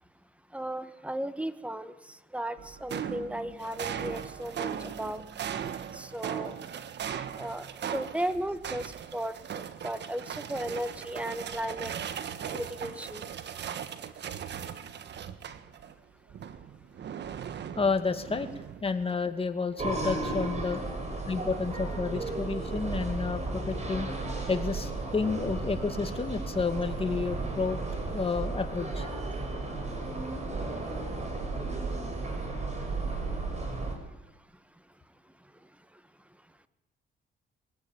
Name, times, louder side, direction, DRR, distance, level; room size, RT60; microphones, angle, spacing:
voice 1, 0.5-1.9 2.3-5.2 5.9-6.6 7.4-7.6 7.9-11.9 12.5-13.2, right 1 dB, 5° right, 12 dB, 1.5 m, -35 dB
sound 1, 2.6-15.9 16.3-19.0, right 8 dB, 60° right, 1.5 m, -38 dB
voice 2, 17.8-18.5 18.8-20.8 21.3-24.1 24.5-27.8 28.1-29.1, left 4 dB, 30° left, 7 dB, 2.4 m, -30 dB
sound 2, 19.8-34.0, right 3 dB, 35° right, 6.3 m, -34 dB
24.0 x 17.0 x 9.1 m, 1.0 s
cardioid pair, 90°, 20 cm